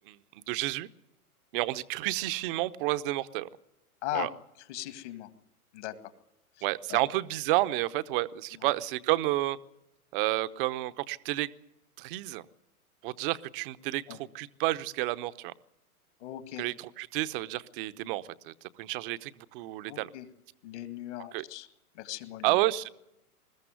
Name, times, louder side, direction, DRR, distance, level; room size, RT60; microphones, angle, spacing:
voice 1, 0.5-0.9 1.5-3.5 4.1-4.3 6.6-9.6 10.1-11.5 12.0-12.4 13.0-15.5 16.6-20.1 21.3-21.4 22.4-22.9, right 17 dB, 35° right, 14 dB, 0.9 m, -30 dB
voice 2, 4.6-5.3 5.7-6.1 6.6-7.0 8.5-8.7 14.1-14.2 16.2-16.6 19.9-20.3 20.6-21.7 21.9-22.6, left 15 dB, 50° left, 11 dB, 2.1 m, -39 dB
21.5 x 14.0 x 9.4 m, 0.89 s
hypercardioid pair, 115°, 45 cm